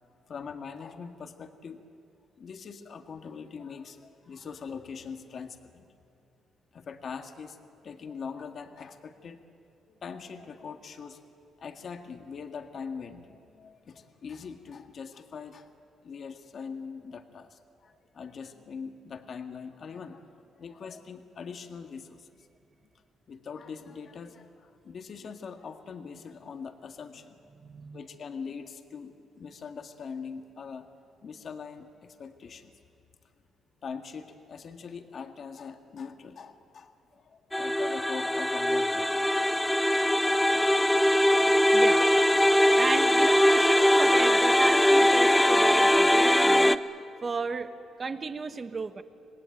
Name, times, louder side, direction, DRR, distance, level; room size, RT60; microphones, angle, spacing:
voice 1, 0.3-1.8 2.4-5.9 6.7-7.6 7.8-9.4 9.9-11.2 11.6-15.7 16.0-20.3 20.6-22.3 23.3-27.4 27.9-30.9 31.2-32.7 33.8-39.3 40.5-40.6 40.9-42.1 42.4-42.8, left 6 dB, 55° left, 6 dB, 1.9 m, -42 dB
voice 2, 27.6-28.0 41.7-42.0 42.8-46.8 47.2-47.7 48.0-49.0, right 4 dB, 35° right, 10 dB, 1.4 m, -34 dB
sound 1, 37.5-46.8, left 1 dB, 10° left, 0.8 m, -21 dB
26.5 x 19.5 x 9.2 m, 2.7 s
cardioid pair, 90°, 0 cm